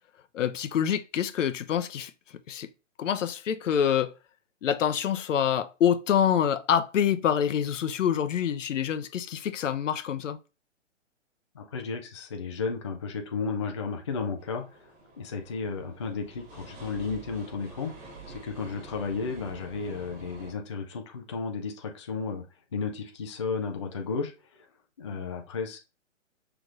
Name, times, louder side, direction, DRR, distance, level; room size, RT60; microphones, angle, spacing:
voice 1, 0.3-2.1 2.5-2.7 3.0-4.1 4.6-10.4, left 9 dB, 70° left, 0.6 m, -26 dB
voice 2, 11.5-14.9 15.2-17.9 18.4-22.4 22.7-24.7 25.0-25.8, left 5 dB, 25° left, 0.4 m, -33 dB
sound 1, 14.4-20.5, right 3 dB, 25° right, 1.4 m, -47 dB
5.9 x 3.3 x 2.4 m
hypercardioid pair, 150°, 38 cm